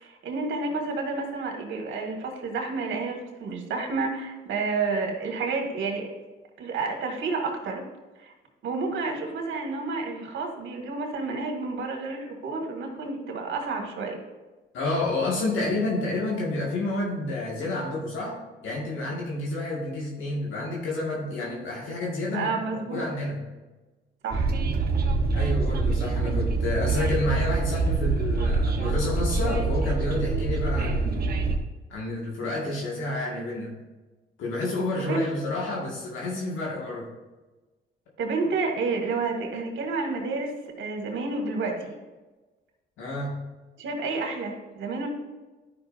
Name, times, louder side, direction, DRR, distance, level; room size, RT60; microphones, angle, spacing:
voice 1, 0.0-6.1 6.6-7.8 8.2-8.3 8.6-14.2 22.3-23.1 24.2-24.5 35.0-35.3 38.2-41.9 43.8-45.1, right 3 dB, 70° right, 2 dB, 2.0 m, -30 dB
voice 2, 14.7-18.4 18.6-22.5 22.9-23.4 25.3-31.3 31.9-33.7 34.4-37.1 43.0-43.4, left 2 dB, 80° left, -3 dB, 1.9 m, -29 dB
Train, 24.3-31.6, right 3 dB, 50° right, 1.0 m, -25 dB
11.5 x 5.9 x 2.6 m, 1.2 s
cardioid pair, 90°, 20 cm